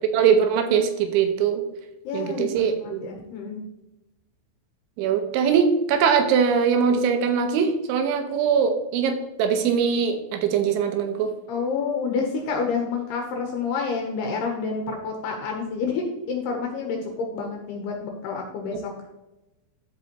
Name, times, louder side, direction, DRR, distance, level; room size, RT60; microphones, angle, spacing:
voice 1, 0.1-1.6 2.1-3.0 5.0-11.3 18.7-18.9, right 7 dB, 80° right, 6 dB, 3.1 m, -22 dB
voice 2, 2.0-2.7 3.0-3.6 11.5-18.9, left 5 dB, 75° left, 2 dB, 2.6 m, -28 dB
13.0 x 5.1 x 3.0 m, 0.97 s
omnidirectional pair, 5.5 m